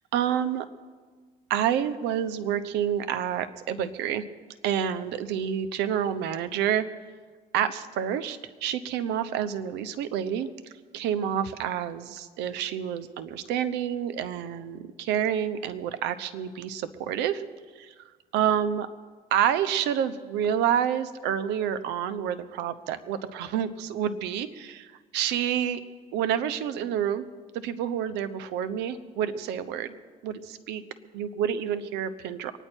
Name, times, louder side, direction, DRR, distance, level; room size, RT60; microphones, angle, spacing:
voice 1, 0.1-0.7 1.5-4.2 4.6-6.8 7.5-10.5 10.9-17.4 17.8-17.9 18.3-18.9 19.3-25.8 26.1-27.2 27.6-30.0 30.2-30.8 31.1-32.5, right 9 dB, 90° right, 12 dB, 0.9 m, -28 dB
24.5 x 10.0 x 4.5 m, 1.5 s
cardioid pair, 110°, 17 cm